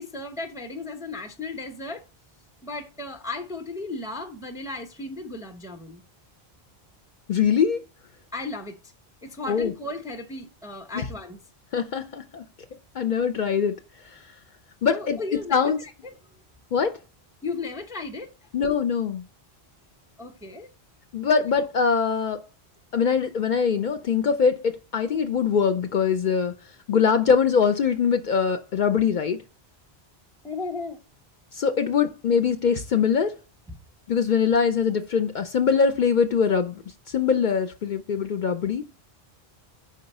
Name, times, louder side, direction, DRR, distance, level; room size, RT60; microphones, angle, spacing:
voice 1, 0.0-2.0 2.6-6.0 8.3-8.8 9.2-11.4 14.9-16.2 17.4-18.3 20.2-20.7 30.4-31.0 33.7-33.8, left 3 dB, 5° right, 0.5 m, -35 dB
voice 2, 7.3-7.8 9.5-9.7 10.9-11.1 11.7-12.5 13.0-13.8 14.8-15.8 16.7-16.9 18.5-19.2 21.1-22.4 22.9-26.5 26.9-29.4 31.5-33.3 34.1-36.7 37.1-38.9, left 6 dB, 55° left, 0.6 m, -22 dB
5.2 x 3.9 x 5.3 m
omnidirectional pair, 1.1 m